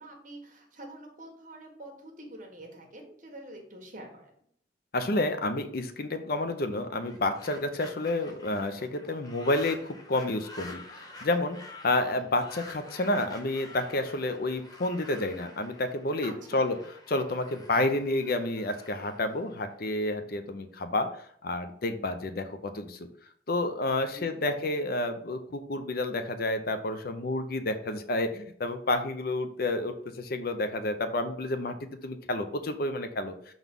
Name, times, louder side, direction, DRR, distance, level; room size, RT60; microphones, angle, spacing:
voice 1, 0.0-4.3 16.2-16.7 24.1-24.4, right 1 dB, 45° right, 1 dB, 1.6 m, -46 dB
voice 2, 4.9-16.8 17.1-21.1 21.4-23.1 23.5-33.5, left 2 dB, 50° left, 8 dB, 0.6 m, -30 dB
sound 1, 7.0-20.2, left 2 dB, 20° left, 0.9 m, -49 dB
6.0 x 4.0 x 5.3 m, 0.63 s
head